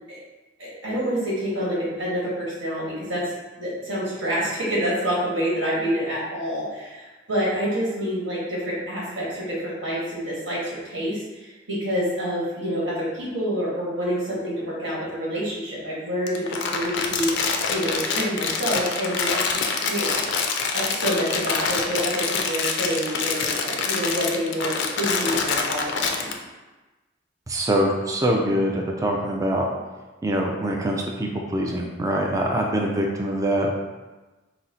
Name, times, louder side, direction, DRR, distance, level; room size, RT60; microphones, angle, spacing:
voice 1, 0.6-3.2 3.6-20.3 20.7-26.3, equal, 70° right, -6 dB, 1.5 m, -27 dB
Crumpling crinkling, 16.2-26.3, left 5 dB, 65° left, 0.4 m, -26 dB
voice 2, 27.5-29.7 30.2-33.7, right 1 dB, 20° right, 0 dB, 0.4 m, -24 dB
4.1 x 2.0 x 3.9 m, 1.2 s
head